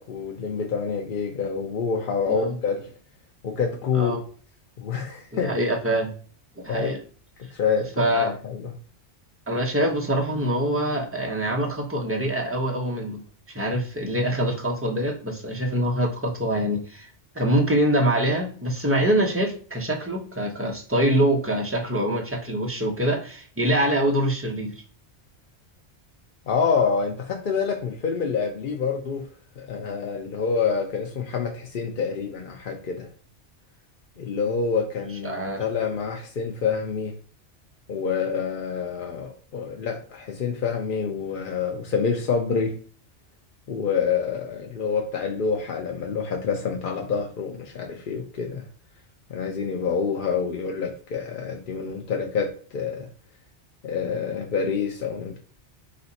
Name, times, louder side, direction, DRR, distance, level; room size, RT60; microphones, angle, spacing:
voice 1, 0.0-2.9 3.4-4.2 4.8-5.5 6.7-6.9 7.5-8.7 26.5-29.2 29.6-33.1 34.2-37.1 37.9-42.7 43.7-48.7 49.3-53.1 53.8-55.4, left 5 dB, 55° left, 2 dB, 0.7 m, -27 dB
voice 2, 5.3-6.1 6.6-7.0 8.0-8.3 9.5-13.2 13.5-17.1 17.3-24.7 35.2-35.6, right 1 dB, 15° right, 1 dB, 0.7 m, -24 dB
4.2 x 2.6 x 4.0 m, 0.42 s
omnidirectional pair, 1.2 m